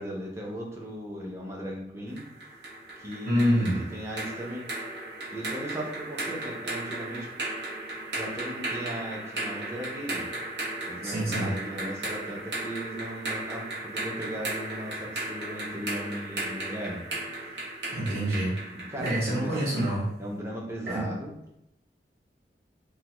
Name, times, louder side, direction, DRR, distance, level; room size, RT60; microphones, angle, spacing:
voice 1, 0.0-2.2 3.0-4.7 5.3-7.3 8.1-10.2 10.8-17.0 18.7-19.8 20.2-21.5, equal, 15° right, -2 dB, 0.5 m, -37 dB
sound 1, 2.2-20.0, right 2 dB, 75° right, 0.9 m, -36 dB
voice 2, 3.2-3.8 11.0-11.5 17.9-18.5 19.0-20.1 20.9-21.1, equal, 55° right, -9 dB, 1.2 m, -26 dB
3.3 x 2.1 x 2.9 m, 0.83 s
head